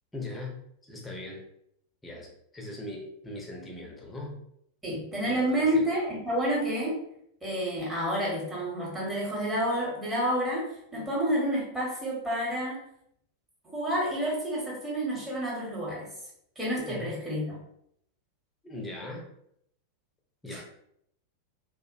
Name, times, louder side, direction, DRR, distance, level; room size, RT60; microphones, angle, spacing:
voice 1, 0.1-1.5 2.0-4.4 4.9-5.4 5.7-5.9 16.9-17.1 18.6-19.3 20.4-20.6, left 2 dB, 10° left, -1 dB, 0.7 m, -40 dB
voice 2, 4.8-7.0 7.4-12.8 13.6-16.1 16.6-17.6 20.5-20.6, equal, 10° right, -5 dB, 1.0 m, -29 dB
2.4 x 2.0 x 2.4 m, 0.72 s
figure-of-eight pair, 90°, 0 cm